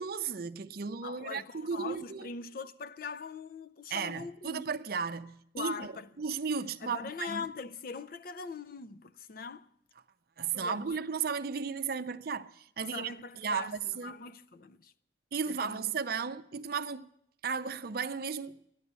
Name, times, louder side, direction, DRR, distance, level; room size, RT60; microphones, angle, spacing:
voice 1, 0.0-2.3 3.9-5.9 6.2-7.4 10.4-14.1 15.3-17.1 17.4-18.6, right 6 dB, 50° right, 0.5 m, -35 dB
voice 2, 1.0-4.7 5.5-6.1 6.8-9.7 10.5-10.9 12.8-13.7 14.0-14.9 15.5-15.8, left 5 dB, 50° left, 0.5 m, -42 dB
13.0 x 10.0 x 8.1 m
head